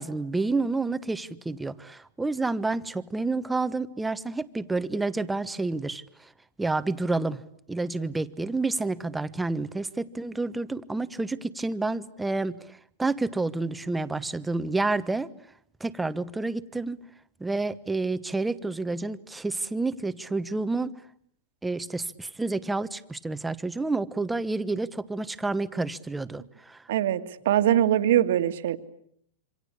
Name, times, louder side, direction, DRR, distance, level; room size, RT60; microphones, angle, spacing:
voice 1, 0.0-6.0 6.6-7.4 7.7-12.6 13.0-15.3 15.8-17.0 17.4-20.9 21.6-26.8, right 3 dB, 5° right, 13 dB, 1.1 m, -29 dB
voice 2, 26.9-28.8, right 11 dB, 75° right, 9 dB, 2.1 m, -22 dB
27.5 x 25.0 x 8.5 m, 0.68 s
hypercardioid pair, 135°, 0 cm